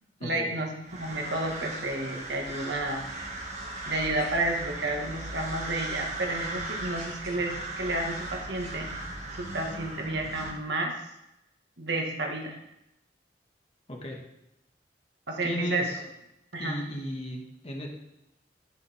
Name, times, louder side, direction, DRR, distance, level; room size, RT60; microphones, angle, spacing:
voice 1, 0.2-3.0 3.8-8.9 9.4-10.9 11.8-12.6 15.3-15.9 16.5-16.8, right 2 dB, 70° right, 1 dB, 1.9 m, -31 dB
sound 1, 0.8-10.5, right 2 dB, 40° right, 2.1 m, -38 dB
voice 2, 13.9-14.2 15.4-16.0 16.6-17.9, equal, 35° left, 1 dB, 1.8 m, -35 dB
11.5 x 8.0 x 3.6 m, 0.85 s
head